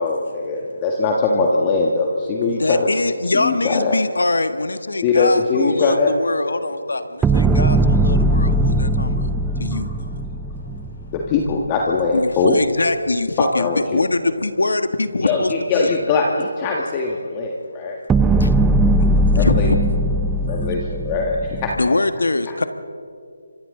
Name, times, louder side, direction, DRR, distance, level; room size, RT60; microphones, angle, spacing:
voice 1, 0.0-2.9 3.3-4.0 5.0-6.1 9.7-9.8 11.1-12.6 13.6-14.0 15.2-18.0 19.3-19.7 20.5-21.7, left 4 dB, 20° left, 0 dB, 1.7 m, -21 dB
voice 2, 2.5-9.3 9.6-9.9 12.1-16.0 18.4-18.5 19.3-19.8 20.4-20.7 21.8-22.6, left 2 dB, 75° left, 9 dB, 1.6 m, -23 dB
sound 1, 7.2-11.5 18.1-21.9, right 1 dB, 5° right, 0.5 m, -19 dB
voice 3, 8.2-8.9 9.2-9.6 9.9-11.0 15.9-16.0 17.5-18.2 19.0-19.4 20.6-20.7, left 3 dB, 50° left, 3 dB, 4.1 m, -48 dB
29.5 x 25.5 x 3.9 m, 2.4 s
figure-of-eight pair, 155°, 0 cm